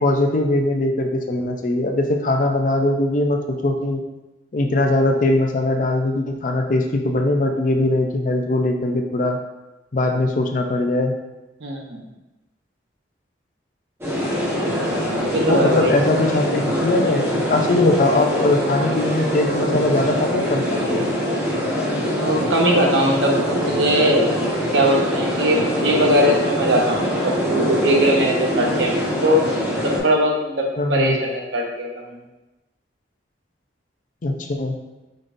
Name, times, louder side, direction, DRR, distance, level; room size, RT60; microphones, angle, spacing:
voice 1, 0.0-4.0 4.5-9.4 9.9-11.1 15.0-15.1 15.5-21.0 30.8-31.2 34.2-34.8, left 2 dB, 45° left, 3 dB, 0.5 m, -21 dB
voice 2, 11.6-12.0 15.3-15.9 22.1-24.2 24.7-29.5 29.8-32.2, equal, 85° right, 0 dB, 0.9 m, -20 dB
sound 1, 14.0-30.0, equal, 15° right, 1.3 m, -23 dB
5.2 x 3.7 x 2.6 m, 1.0 s
head